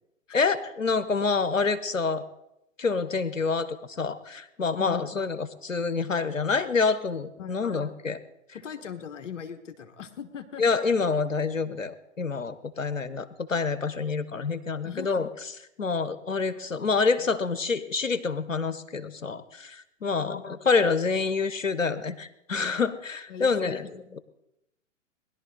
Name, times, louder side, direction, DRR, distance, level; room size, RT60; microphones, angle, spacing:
voice 1, 0.3-2.2 2.8-8.2 10.6-15.3 15.8-24.2, left 4 dB, 90° left, 13 dB, 1.2 m, -27 dB
voice 2, 7.4-7.9 8.5-10.6 14.8-15.3 20.0-20.4 23.3-24.2, left 8 dB, 70° left, 8 dB, 1.5 m, -41 dB
20.5 x 11.5 x 4.0 m, 0.85 s
figure-of-eight pair, 110°, 38 cm